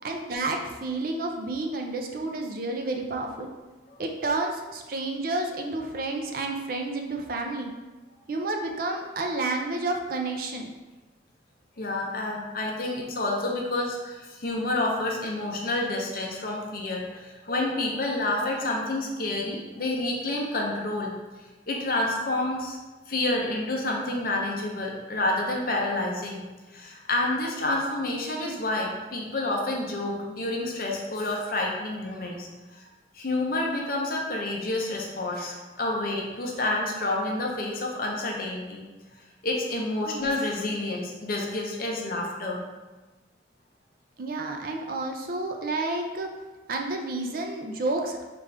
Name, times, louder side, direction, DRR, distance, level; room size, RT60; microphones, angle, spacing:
voice 1, 0.0-3.5 4.0-7.7 8.3-10.7 40.1-40.4 44.2-46.3 46.7-48.2, right 2 dB, 55° right, 3 dB, 0.5 m, -30 dB
voice 2, 11.8-21.1 21.7-22.8 23.1-26.4 26.7-32.9 33.1-38.8 39.4-42.6, left 2 dB, 55° left, -1 dB, 0.7 m, -29 dB
4.9 x 2.5 x 3.3 m, 1.2 s
head